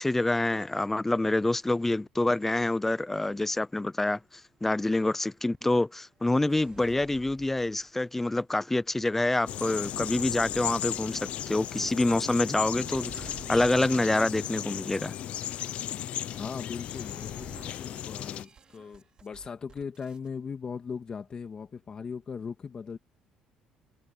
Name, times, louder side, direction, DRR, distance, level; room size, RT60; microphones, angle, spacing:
voice 1, 0.0-4.2 4.6-15.1, left 2 dB, 10° left, 0.7 m, -27 dB
sound 1, 6.5-8.1 8.7-14.2 14.8-15.2 16.3-20.3, right 6 dB, 40° right, 5.9 m, -52 dB
sound 2, 9.5-18.4, left 11 dB, 65° left, 0.8 m, -35 dB
voice 2, 16.4-23.0, left 6 dB, 35° left, 2.7 m, -39 dB
cardioid pair, 105°, 2 cm